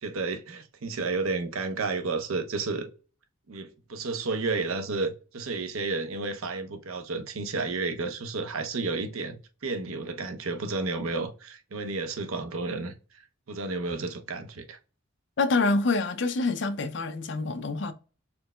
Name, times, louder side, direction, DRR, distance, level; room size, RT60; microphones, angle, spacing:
voice 1, 0.0-2.9 3.5-12.9 13.5-14.8, right 3 dB, 90° right, 0.7 m, -31 dB
voice 2, 15.4-17.9, left 3 dB, 55° left, 0.5 m, -26 dB
4.5 x 3.2 x 2.3 m
head